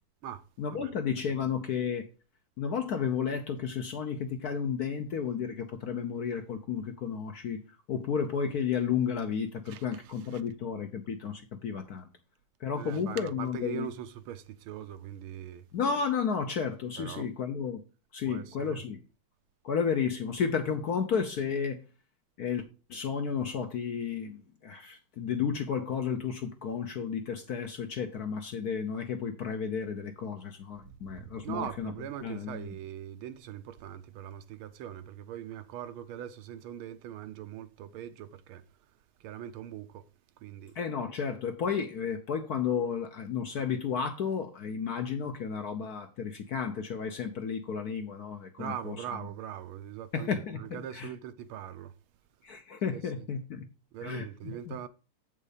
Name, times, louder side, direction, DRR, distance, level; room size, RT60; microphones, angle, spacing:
voice 1, 0.6-2.1 2.6-7.6 7.9-12.1 12.6-13.9 15.7-17.8 18.1-19.0 19.6-21.8 22.4-22.6 22.9-31.9 32.2-32.7 40.7-49.3 50.1-51.1 52.4-53.6 54.0-54.8, left 6 dB, 60° left, 1.1 m, -32 dB
voice 2, 9.7-10.4 12.7-15.6 17.0-17.3 18.3-18.8 30.9-38.6 39.2-40.0 40.4-40.7 48.6-51.9 53.9-54.9, right 10 dB, 75° right, 1.5 m, -41 dB
8.0 x 5.5 x 5.0 m
omnidirectional pair, 2.4 m